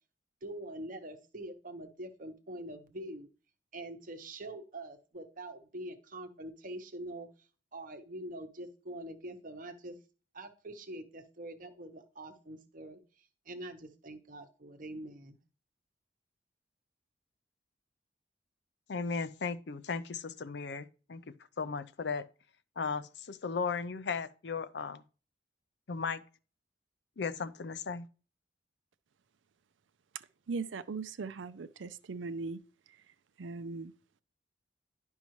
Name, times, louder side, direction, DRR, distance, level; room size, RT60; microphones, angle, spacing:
voice 1, 0.4-3.3 3.7-7.3 7.7-9.9 10.3-13.0 13.5-15.4, right 1 dB, 45° right, 1.0 m, -44 dB
voice 2, 18.9-21.2 21.6-22.2 22.8-25.0 25.9-26.2 27.2-28.1, left 5 dB, 60° left, 0.5 m, -36 dB
voice 3, 30.1-32.6 32.9-33.0 33.4-33.9, right 4 dB, 85° right, 0.5 m, -39 dB
10.5 x 5.4 x 3.1 m
head